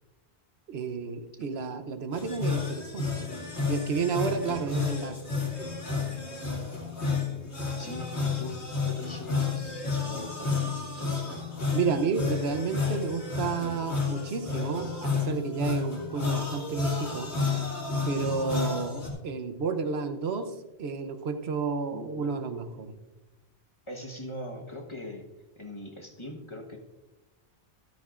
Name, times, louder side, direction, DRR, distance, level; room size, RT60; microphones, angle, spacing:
voice 1, 0.7-3.3 3.7-5.2 11.7-17.3 18.1-20.5 20.8-23.0, right 5 dB, 70° right, 8 dB, 1.0 m, -31 dB
sound 1, 2.1-19.1, left 4 dB, 90° left, 2.6 m, -31 dB
voice 2, 7.8-11.5 21.9-22.3 23.9-25.3 25.6-26.8, left 1 dB, 30° left, 1 dB, 1.2 m, -41 dB
13.0 x 13.0 x 2.5 m, 1.1 s
omnidirectional pair, 1.1 m